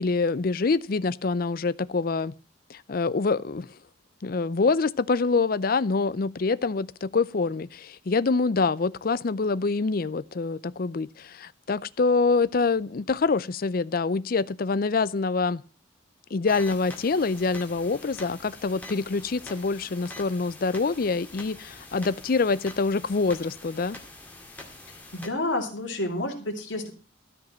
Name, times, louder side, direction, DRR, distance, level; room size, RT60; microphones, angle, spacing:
voice 1, 0.0-2.3 2.7-3.7 4.2-15.6 16.3-24.0, left 4 dB, 50° left, 0.5 m, -25 dB
sound 1, 16.5-25.3, left 2 dB, 10° left, 1.9 m, -45 dB
voice 2, 25.1-26.9, left 1 dB, 75° left, 2.7 m, -29 dB
13.5 x 5.3 x 7.3 m
head